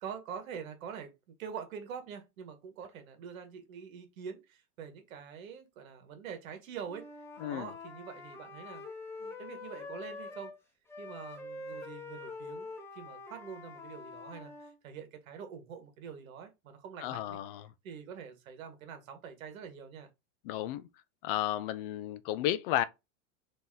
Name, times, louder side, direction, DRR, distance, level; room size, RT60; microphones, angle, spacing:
voice 1, 0.0-7.1 7.4-8.8 9.2-10.5 11.0-17.4 17.8-20.1, right 7 dB, 85° right, 1.6 m, -45 dB
Wind instrument woodwind instrument, 6.9-10.6 10.9-14.7, left 3 dB, 5° left, 0.8 m, -45 dB
voice 2, 7.4-7.7 17.0-17.7 20.4-20.9 21.2-22.8, left 12 dB, 45° left, 0.4 m, -33 dB
4.1 x 2.8 x 3.7 m
supercardioid pair, 145°, 40 cm